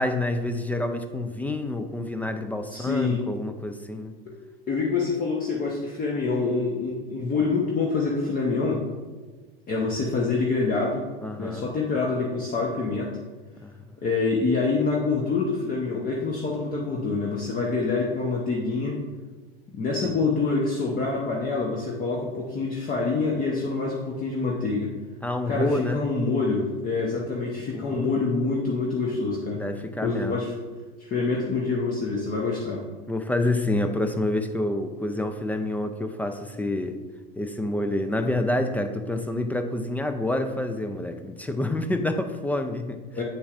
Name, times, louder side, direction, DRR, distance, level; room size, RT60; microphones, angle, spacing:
voice 1, 0.0-4.1 11.2-11.7 13.6-14.0 20.0-20.2 25.2-26.0 27.7-28.0 29.5-30.4 33.1-37.0 37.4-43.0, left 1 dB, 5° left, 7 dB, 0.3 m, -28 dB
voice 2, 2.7-3.2 4.3-4.4 4.7-8.8 9.7-11.0 11.4-13.1 14.0-19.0 19.7-24.9 25.5-29.6 30.0-30.5 31.0-32.8 43.1-43.2, left 4 dB, 30° left, -2 dB, 1.0 m, -26 dB
8.2 x 6.9 x 2.5 m, 1.3 s
figure-of-eight pair, 85°, 29 cm